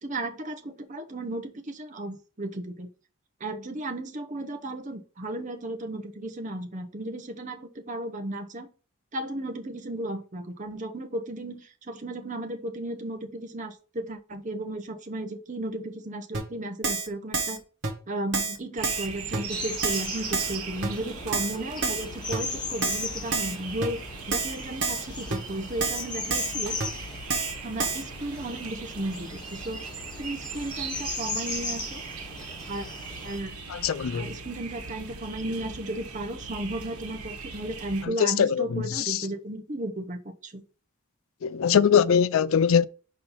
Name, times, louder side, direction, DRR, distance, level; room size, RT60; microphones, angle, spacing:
voice 1, 0.0-2.9 3.4-8.7 9.1-17.6 18.1-24.0 24.3-26.7 27.6-29.8 30.2-32.0 32.7-32.9 33.2-33.6 34.1-40.6, right 1 dB, 35° right, 0.9 m, -34 dB
Keyboard (musical), 16.3-16.4 16.8-17.1 17.3-17.6 17.8-17.9 18.3-18.6 18.8-19.1 19.3-19.4 19.8-20.1 20.3-20.6 20.8-20.9 21.3-21.6 21.8-22.0 22.3-22.4 22.8-23.0 23.3-23.6 23.8-23.9 24.3-24.5 24.8-25.0 25.3-25.4 25.8-26.0 26.3-26.5 26.8-26.9 27.3-27.5 27.8-28.0, right 4 dB, 55° right, 1.7 m, -28 dB
sound 1, 18.8-38.1, right 5 dB, 80° right, 1.2 m, -39 dB
sound 2, 19.5-33.4, left 4 dB, 20° left, 0.6 m, -38 dB
voice 2, 33.7-34.3 38.2-39.2 41.4-42.8, left 7 dB, 65° left, 0.4 m, -22 dB
5.7 x 4.3 x 5.4 m
head